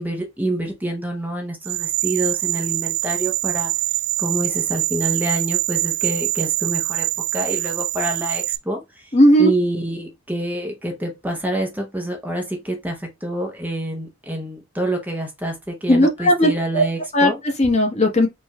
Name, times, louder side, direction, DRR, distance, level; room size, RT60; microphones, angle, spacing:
voice 1, 0.0-7.1 7.3-17.4, right 1 dB, 10° right, 0.7 m, -27 dB
sound 1, 1.6-8.6, right 18 dB, 60° right, 0.4 m, -24 dB
voice 2, 9.1-9.5 15.9-16.8 17.1-18.3, equal, 35° left, 1.2 m, -16 dB
4.5 x 2.4 x 4.1 m
head